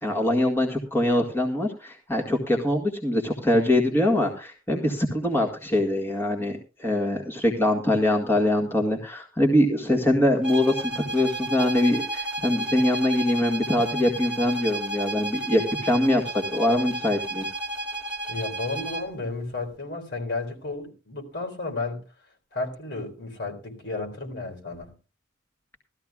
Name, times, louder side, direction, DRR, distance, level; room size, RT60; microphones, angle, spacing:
voice 1, 0.0-17.5, left 1 dB, 10° left, 1.8 m, -23 dB
sound 1, 10.4-19.1, right 2 dB, 5° right, 2.3 m, -32 dB
voice 2, 18.3-22.0 22.5-24.9, left 3 dB, 60° left, 3.9 m, -33 dB
19.0 x 13.5 x 2.4 m
head